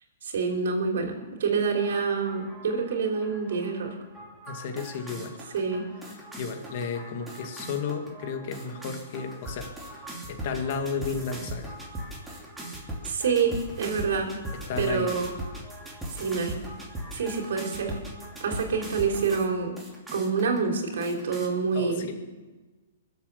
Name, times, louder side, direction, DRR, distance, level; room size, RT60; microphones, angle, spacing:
voice 1, 0.2-4.0 5.5-5.9 13.0-14.3 14.8-15.3 16.1-16.5 17.1-18.0 18.4-19.7 20.1-22.1, right 5 dB, 70° right, 2 dB, 3.5 m, -27 dB
sound 1, 1.7-19.5 19.8-20.6 21.0-21.5, right 1 dB, 5° right, 2.9 m, -40 dB
voice 2, 4.5-5.4 6.1-9.7 10.3-11.8 14.7-15.1 21.7-22.1, left 5 dB, 50° left, 5 dB, 2.1 m, -33 dB
23.0 x 8.1 x 6.8 m, 1.2 s
hypercardioid pair, 150°, 0 cm